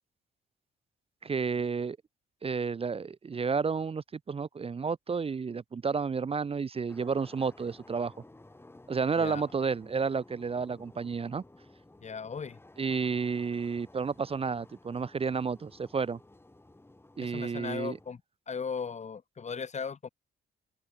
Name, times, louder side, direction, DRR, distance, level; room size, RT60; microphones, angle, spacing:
voice 1, 1.2-2.0 2.4-8.1 8.9-11.4 12.8-16.2 17.2-18.0, right 5 dB, 30° right, 0.7 m, -31 dB
sound 1, 6.9-18.1, left 2 dB, 10° left, 3.3 m, -55 dB
voice 2, 12.0-12.6 17.2-18.2 18.5-20.1, left 6 dB, 35° left, 1.5 m, -37 dB
open air
cardioid pair, 90°, 20 cm